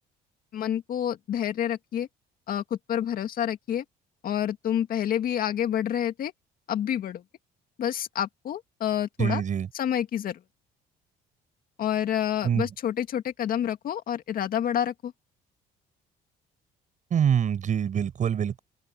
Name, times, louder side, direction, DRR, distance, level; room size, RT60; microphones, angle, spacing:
voice 1, 0.5-2.1 2.5-3.8 4.2-6.3 6.7-7.2 7.8-9.4 9.7-10.4 11.8-15.1, left 10 dB, 60° left, 2.2 m, -28 dB
voice 2, 9.2-9.7 12.4-12.7 17.1-18.6, right 8 dB, 50° right, 6.7 m, -25 dB
open air
cardioid pair, 110°, 17 cm